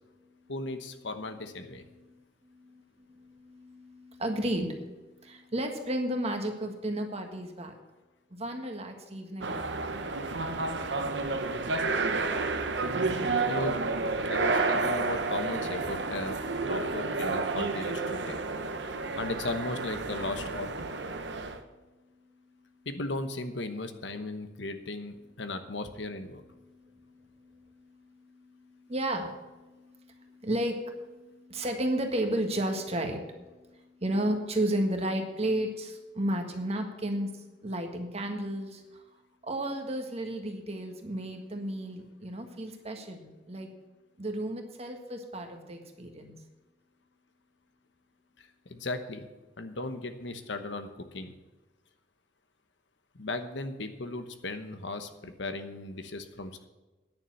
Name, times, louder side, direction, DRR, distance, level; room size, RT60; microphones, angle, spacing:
voice 1, 0.5-1.8 13.4-13.8 14.3-16.4 16.6-18.4 19.2-20.7 22.8-26.4 48.4-49.3 49.6-51.3 53.1-56.7, left 2 dB, 75° left, 8 dB, 1.1 m, -36 dB
voice 2, 2.4-2.8 3.1-7.7 8.3-10.0 26.6-37.3 37.6-39.0 39.4-43.7 44.2-46.4, right 1 dB, 35° right, 4 dB, 1.6 m, -33 dB
sound 1, 9.4-21.6, right 3 dB, 70° right, 1.0 m, -30 dB
9.8 x 7.0 x 9.0 m, 1.2 s
head